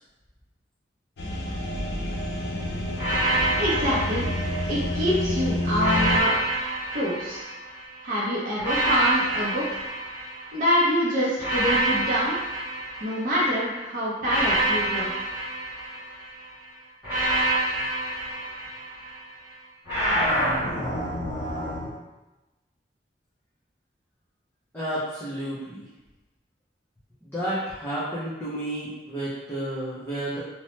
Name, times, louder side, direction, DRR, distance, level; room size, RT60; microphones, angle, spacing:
sound 1, 1.2-6.2, left 1 dB, 65° left, 0.4 m, -28 dB
sound 2, 3.0-5.1 5.8-7.9 8.6-10.8 11.4-13.5 14.2-16.4 17.0-19.2 19.9-21.9, right 1 dB, 10° right, 1.2 m, -27 dB
voice 1, 3.6-4.3 4.7-6.4 6.9-7.4 8.0-9.8 10.5-12.4 13.0-15.3, equal, 45° right, -8 dB, 0.6 m, -26 dB
voice 2, 24.7-25.8 27.2-30.4, right 1 dB, 15° left, -11 dB, 0.5 m, -31 dB
2.9 x 2.1 x 3.0 m, 1.1 s
head